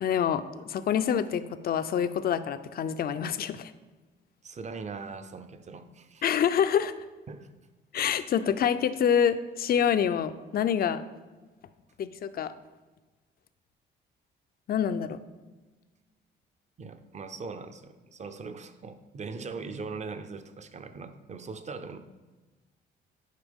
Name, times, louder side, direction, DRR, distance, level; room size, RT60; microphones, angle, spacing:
voice 1, 0.0-3.7 6.2-6.9 7.9-11.1 12.0-12.5 14.7-15.2, left 8 dB, 50° left, 12 dB, 0.5 m, -26 dB
voice 2, 4.4-6.2 7.3-7.5 16.8-22.0, right 4 dB, 35° right, 10 dB, 0.6 m, -40 dB
10.5 x 4.5 x 3.6 m, 1.2 s
cardioid pair, 90°, 20 cm